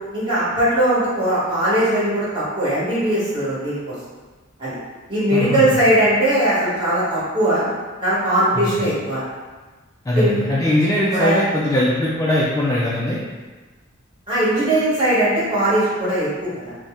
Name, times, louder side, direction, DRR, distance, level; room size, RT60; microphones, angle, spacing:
voice 1, 0.1-3.9 4.6-4.8 5.1-7.6 8.0-9.2 10.1-10.5 11.1-11.4 14.3-16.7, right 1 dB, 25° right, -10 dB, 1.2 m, -19 dB
voice 2, 5.3-5.8 8.5-8.8 10.1-13.2, left 1 dB, 15° left, -7 dB, 0.3 m, -20 dB
2.7 x 2.0 x 3.5 m, 1.3 s
head